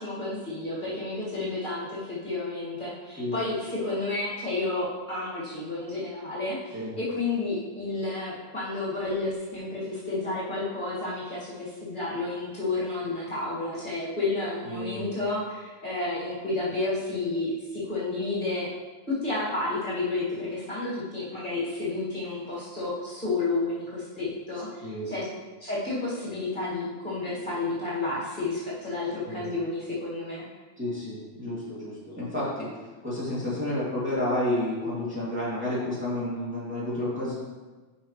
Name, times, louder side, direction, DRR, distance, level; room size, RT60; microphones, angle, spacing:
voice 1, 0.0-18.7 19.1-25.3 25.6-30.4, left 2 dB, 40° left, -9 dB, 2.4 m, -31 dB
voice 2, 14.7-15.1 24.8-25.1 29.3-29.5 30.8-32.7 33.0-37.3, left 1 dB, 10° right, -10 dB, 2.7 m, -30 dB
11.0 x 5.6 x 3.2 m, 1.3 s
omnidirectional pair, 1.3 m